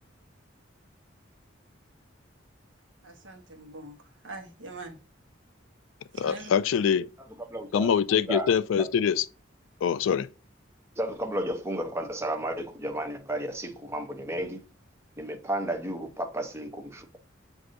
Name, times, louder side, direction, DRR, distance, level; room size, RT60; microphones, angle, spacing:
voice 1, 3.0-5.0 6.1-6.5, right 2 dB, 75° right, 1.0 m, -43 dB
voice 2, 6.1-7.1 7.7-9.3 9.8-10.3, left 7 dB, 85° left, 0.3 m, -24 dB
voice 3, 7.5-7.9 8.3-8.5 11.0-14.6 15.2-17.2, right 1 dB, 15° right, 0.6 m, -32 dB
7.6 x 2.6 x 2.5 m
head